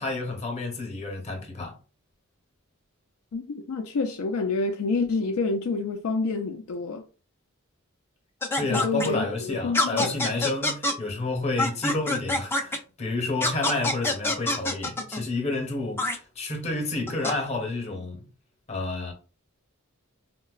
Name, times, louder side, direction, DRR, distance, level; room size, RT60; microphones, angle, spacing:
voice 1, 0.0-1.7 8.5-18.2 18.7-19.1, left 2 dB, 30° left, 0.8 m, -30 dB
voice 2, 3.3-7.0 8.7-10.2, left 3 dB, 85° left, 0.4 m, -28 dB
sound 1, 8.4-9.1 9.7-10.9 11.6-12.8 13.4-15.2 16.0-16.2 17.1-17.3, left 2 dB, 10° left, 0.4 m, -25 dB
3.9 x 2.2 x 2.3 m
head